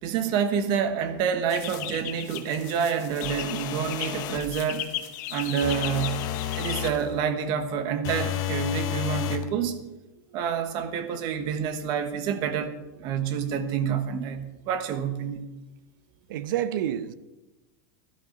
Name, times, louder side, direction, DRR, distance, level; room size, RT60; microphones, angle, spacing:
voice 1, 0.0-4.9 5.3-6.3 6.6-9.8 10.3-15.4, right 7 dB, 40° right, 1.4 m, -28 dB
sound 1, 1.5-7.2, left 12 dB, 55° left, 1.3 m, -37 dB
sound 2, 3.2-4.5 5.6-7.0 8.0-9.5, left 12 dB, 35° left, 1.0 m, -31 dB
voice 2, 16.3-17.1, right 11 dB, 75° right, 0.8 m, -28 dB
16.0 x 12.5 x 4.0 m
supercardioid pair, 160°, 11 cm